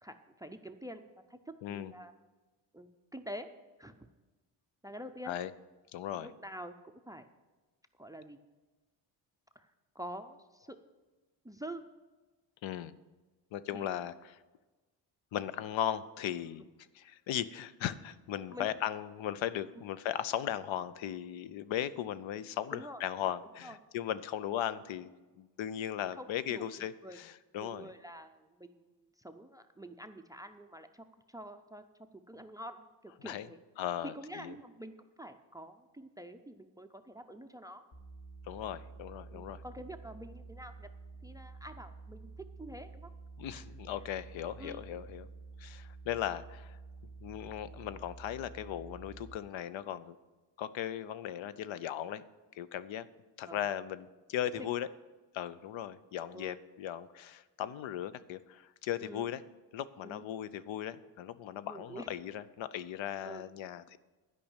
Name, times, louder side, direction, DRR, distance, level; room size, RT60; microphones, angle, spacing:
voice 1, 0.0-2.1 2.7-3.5 3.8-4.1 4.8-5.3 6.2-6.7 7.1-7.3 8.0-8.4 9.6-10.8 11.4-11.9 13.7-14.0 18.5-18.7 22.7-23.0 23.6-23.8 25.9-27.2 27.6-31.8 32.1-33.6 34.0-37.8 39.3-40.9 41.2-43.1 43.5-43.6 44.6-44.8 53.5-53.7 54.5-54.7 56.3-56.6 59.0-59.3 60.0-60.2 61.7-62.1 63.2-63.4, right 1 dB, 10° right, 10 dB, 0.3 m, -47 dB
voice 2, 1.6-1.9 5.3-5.5 5.9-6.3 12.6-13.0 13.5-14.4 15.3-16.7 16.9-25.1 25.4-27.9 33.2-33.5 33.8-34.6 38.5-39.6 43.4-45.3 45.6-46.8 47.2-50.2 50.6-52.2 52.5-53.1 53.4-54.9 55.3-59.4 59.7-64.0, left 11 dB, 85° left, 15 dB, 0.6 m, -37 dB
sound 1, 37.9-49.4, right 4 dB, 55° left, 1.6 m, -50 dB
11.5 x 5.3 x 8.8 m, 1.2 s
wide cardioid pair, 155°, 45 cm